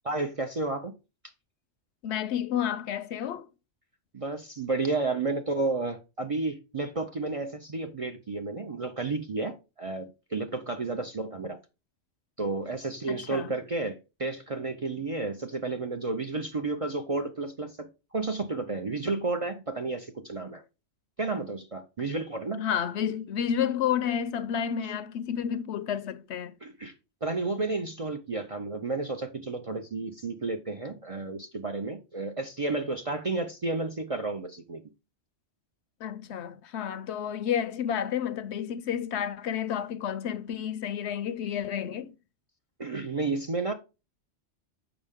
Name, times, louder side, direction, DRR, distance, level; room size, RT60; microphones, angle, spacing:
voice 1, 0.0-0.9 4.1-11.6 12.4-20.6 21.2-22.6 26.6-26.9 27.2-34.8 42.8-43.7, right 3 dB, 40° right, 0.5 m, -32 dB
voice 2, 2.0-3.5 8.6-8.7 13.1-13.6 22.6-26.6 36.0-42.1, left 9 dB, 70° left, 0.8 m, -31 dB
7.0 x 5.4 x 3.5 m
omnidirectional pair, 1.2 m